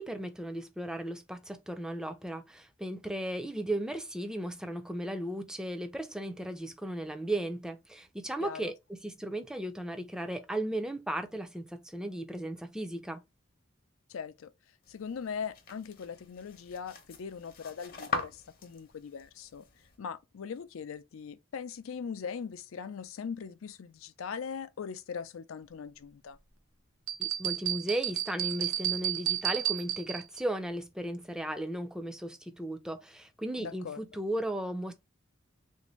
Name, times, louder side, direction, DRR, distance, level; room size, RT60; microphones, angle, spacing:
voice 1, 0.0-13.2 27.2-34.9, right 1 dB, 5° right, 0.4 m, -36 dB
voice 2, 8.4-8.7 14.1-14.5 14.9-19.6 20.0-26.4 33.6-34.0, left 6 dB, 85° left, 0.4 m, -40 dB
sound 1, 14.8-20.0, left 4 dB, 45° left, 0.7 m, -42 dB
sound 2, 27.1-30.4, right 12 dB, 90° right, 0.6 m, -32 dB
3.4 x 2.6 x 3.0 m
head